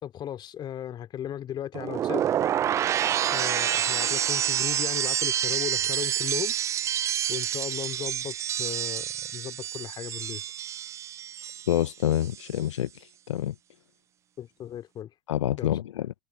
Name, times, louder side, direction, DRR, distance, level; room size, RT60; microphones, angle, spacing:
voice 1, 0.0-2.2 3.3-6.5 7.3-10.4 14.4-15.1 15.5-15.7, left 10 dB, 25° left, 2.7 m, -36 dB
sound 1, 1.7-11.8 12.1-12.6, right 10 dB, 15° right, 0.4 m, -28 dB
voice 2, 11.7-13.5 15.3-16.1, left 12 dB, 60° left, 0.8 m, -27 dB
figure-of-eight pair, 95°, 18 cm